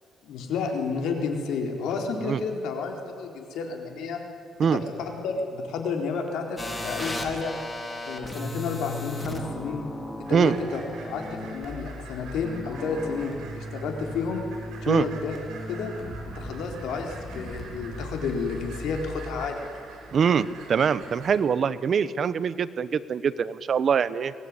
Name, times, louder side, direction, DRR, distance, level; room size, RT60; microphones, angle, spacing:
voice 1, 0.2-4.2 4.7-7.5 8.0-9.8 10.3-10.8 11.1-14.4 14.8-15.4 15.7-15.9 16.3-19.7, left 5 dB, 85° left, 3 dB, 4.2 m, -31 dB
sound 1, 6.6-19.5, left 1 dB, 15° left, 3.2 m, -37 dB
sound 2, 10.2-21.4, right 4 dB, 75° right, 7.4 m, -46 dB
voice 2, 20.1-24.3, right 7 dB, 45° right, 15 dB, 1.0 m, -23 dB
24.0 x 18.5 x 9.8 m, 2.4 s
cardioid pair, 125°, 0 cm